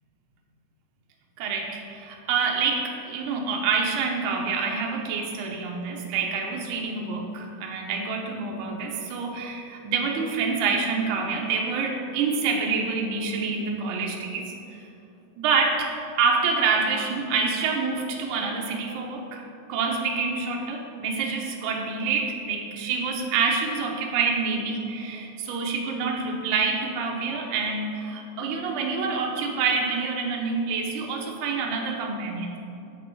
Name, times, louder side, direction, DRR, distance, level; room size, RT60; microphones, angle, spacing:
voice 1, 1.4-14.5 15.4-19.4 19.7-32.6, right 4 dB, 80° right, 0 dB, 1.8 m, -27 dB
7.2 x 6.5 x 4.7 m, 2.7 s
omnidirectional pair, 4.8 m